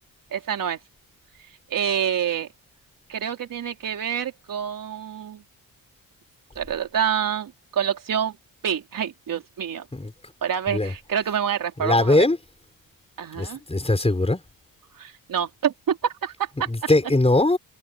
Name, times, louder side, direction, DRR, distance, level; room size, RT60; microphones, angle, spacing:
voice 1, 0.3-0.8 1.7-2.5 3.1-5.4 6.6-8.4 8.6-9.9 10.4-12.3 13.2-13.6 14.9-16.9, right 8 dB, 65° right, 4.1 m, -27 dB
voice 2, 11.8-12.4 13.4-14.4 16.7-17.6, left 2 dB, 15° left, 5.8 m, -20 dB
cardioid pair, 80°, 35 cm